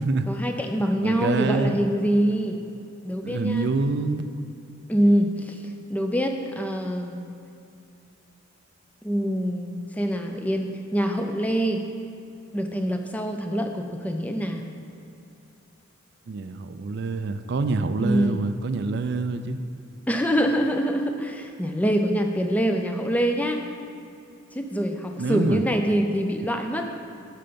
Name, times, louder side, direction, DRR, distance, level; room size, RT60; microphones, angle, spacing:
voice 1, 0.3-2.6 3.0-3.7 4.9-5.6 5.9-7.2 9.0-11.8 12.5-14.6 18.0-18.4 20.1-23.6 24.5-26.9, equal, 5° left, 4 dB, 0.4 m, -25 dB
voice 2, 1.0-1.8 3.2-4.3 16.3-19.6 25.2-25.6, right 3 dB, 55° right, 10 dB, 0.4 m, -26 dB
9.0 x 5.7 x 5.2 m, 2.6 s
head